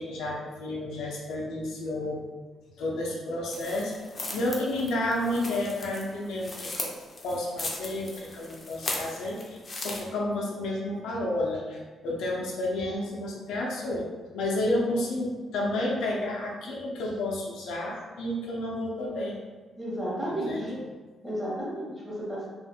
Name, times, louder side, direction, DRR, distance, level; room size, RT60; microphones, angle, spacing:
voice 1, 0.0-2.2 2.8-3.9 4.3-6.9 7.2-14.1 14.3-19.4 20.2-20.8, left 1 dB, 90° left, -2 dB, 0.5 m, -31 dB
sound 1, 3.5-10.0, left 2 dB, 35° left, 0.5 m, -38 dB
voice 2, 14.7-15.0 19.8-20.7 21.2-22.5, equal, 10° right, -6 dB, 1.0 m, -33 dB
2.5 x 2.4 x 2.7 m, 1.3 s
cardioid pair, 95°, 0 cm